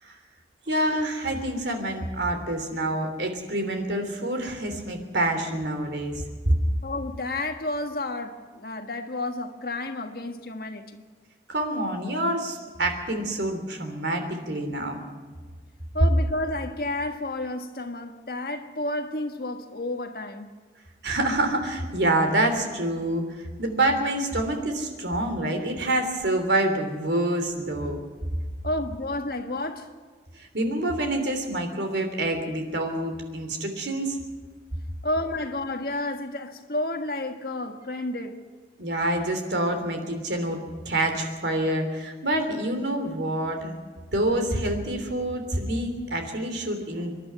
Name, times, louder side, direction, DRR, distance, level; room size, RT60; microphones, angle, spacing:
voice 1, 0.7-6.5 11.5-15.0 21.0-28.0 30.4-34.2 38.8-43.8 44.1-47.1, right 1 dB, 80° right, 3.3 m, -27 dB
voice 2, 6.8-11.0 15.9-20.5 28.6-29.9 35.0-38.4 45.7-45.8, left 2 dB, 55° left, 1.6 m, -31 dB
25.0 x 11.5 x 9.5 m
head